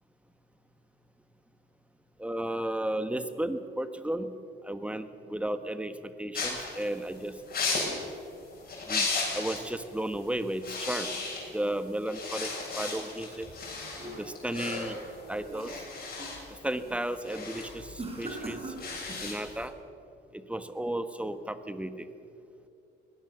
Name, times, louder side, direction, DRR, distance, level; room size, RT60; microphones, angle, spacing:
voice 1, 2.2-4.3 4.6-7.3 8.9-9.1 9.3-11.1 11.5-12.5 12.8-13.5 14.2-15.0 15.3-15.7 16.6-18.6 19.2-19.7 20.3-22.1, right 1 dB, 5° right, 10 dB, 1.4 m, -33 dB
sound 1, 6.3-9.7 10.0-10.2 10.5-11.7 12.0-19.6, left 3 dB, 50° left, 7.2 m, -35 dB
sound 2, 13.4-14.6 15.0-16.4 16.8-17.1 18.0-19.3, right 2 dB, 30° right, 5.8 m, -42 dB
21.0 x 18.0 x 7.0 m, 2.6 s
cardioid pair, 90°, 20 cm